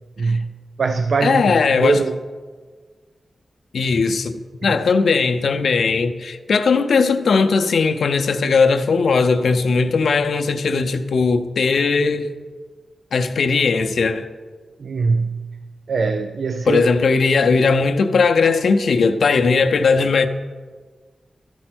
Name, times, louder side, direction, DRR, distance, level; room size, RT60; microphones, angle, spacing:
voice 1, 0.2-2.1 4.6-4.8 14.8-15.5 15.9-16.9, right 4 dB, 65° right, 0.4 m, -22 dB
voice 2, 1.2-2.0 3.7-4.4 4.6-12.3 13.1-14.3 16.7-20.3, left 4 dB, 90° left, 0.5 m, -18 dB
13.0 x 4.3 x 6.0 m
wide cardioid pair, 125°, 0 cm